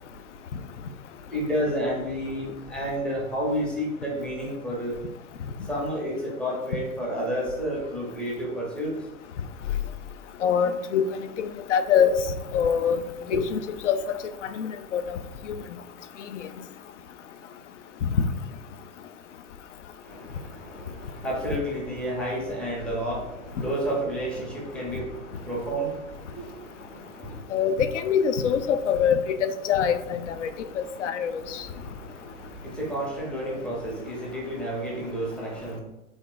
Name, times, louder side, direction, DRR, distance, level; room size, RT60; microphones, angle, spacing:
voice 1, 1.3-4.9 5.7-8.9 13.3-13.4 20.0-27.4 30.4-35.8, equal, ahead, -4 dB, 0.6 m, -31 dB
voice 2, 10.4-12.2 12.5-13.0 13.3-14.0 14.5-15.2 18.0-18.1 27.5-30.5 30.8-31.7, left 7 dB, 60° left, 10 dB, 0.5 m, -24 dB
3.6 x 2.5 x 3.8 m, 0.97 s
figure-of-eight pair, 105°, 42 cm